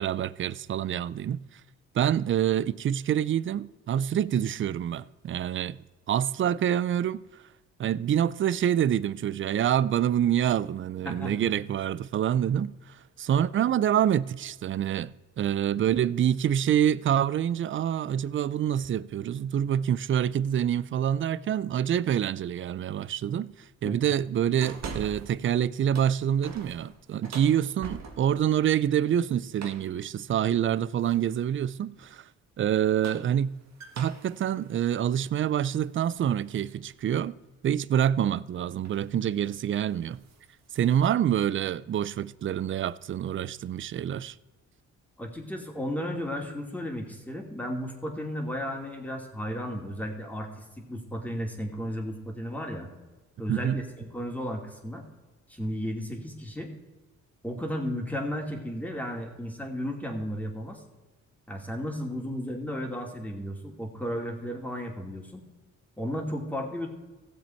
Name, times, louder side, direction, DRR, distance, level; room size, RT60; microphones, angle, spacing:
voice 1, 0.0-1.4 1.9-5.8 6.1-7.2 7.8-15.1 15.4-23.5 23.8-32.2 32.6-33.5 34.0-37.4 37.6-40.2 40.7-44.3 53.5-53.8, right 10 dB, 40° right, 0.4 m, -26 dB
voice 2, 11.0-11.5 23.8-24.0 45.2-52.9 53.4-55.0 55.5-56.7 57.4-60.8 61.5-65.4 66.0-66.9, equal, 5° left, 2.5 m, -34 dB
sound 1, 24.6-25.4 25.8-28.5 29.6-30.0 31.0-31.5 32.7-36.2 36.6-36.7 38.3-38.5 38.8-39.1 39.4-39.7 40.0-41.0, right 5 dB, 60° right, 1.6 m, -44 dB
16.0 x 7.5 x 4.5 m
cardioid pair, 90°, 30 cm